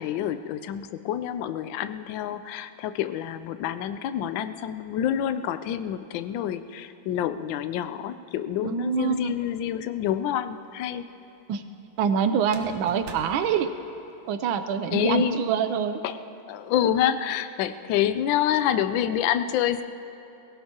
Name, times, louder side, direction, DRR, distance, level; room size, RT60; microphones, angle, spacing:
voice 1, 0.0-11.0 14.9-15.4 16.0-16.2 16.5-19.8, left 10 dB, 75° left, 11 dB, 1.3 m, -27 dB
voice 2, 8.6-9.4 11.5-11.6 12.0-13.7 14.3-16.0, right 7 dB, 85° right, 9 dB, 1.5 m, -25 dB
sound 1, 9.3-10.0 12.4-14.4, right 4 dB, 70° right, 1.7 m, -46 dB
22.5 x 17.0 x 2.9 m, 2.8 s
omnidirectional pair, 2.2 m